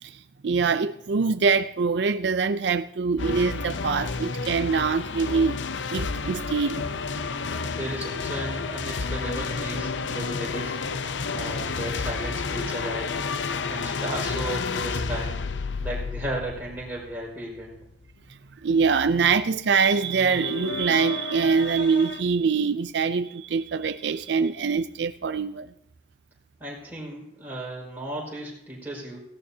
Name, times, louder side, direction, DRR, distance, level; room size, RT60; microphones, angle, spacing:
voice 1, 0.0-5.6 5.9-6.8 13.6-13.7 18.3-25.7, right 5 dB, 70° right, 12 dB, 0.5 m, -24 dB
sound 1, 3.2-18.1 19.9-22.2, left 4 dB, 85° left, 0.7 m, -31 dB
voice 2, 7.7-10.8 11.3-13.1 13.6-15.4 15.8-17.8 26.6-29.2, right 1 dB, 10° right, -4 dB, 5.0 m, -35 dB
17.5 x 16.5 x 2.8 m, 0.82 s
head